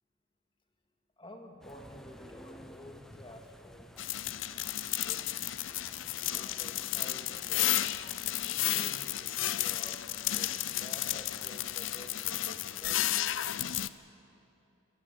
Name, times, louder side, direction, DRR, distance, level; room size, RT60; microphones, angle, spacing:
voice 1, 1.2-4.0 4.7-5.3 6.3-7.9 8.2-13.2, left 1 dB, 25° left, 3 dB, 2.1 m, -51 dB
sound 1, 1.6-13.9, equal, ahead, 0.8 m, -55 dB
sound 2, 4.0-13.9, left 13 dB, 80° left, 0.6 m, -33 dB
25.5 x 15.5 x 9.5 m, 2.7 s
head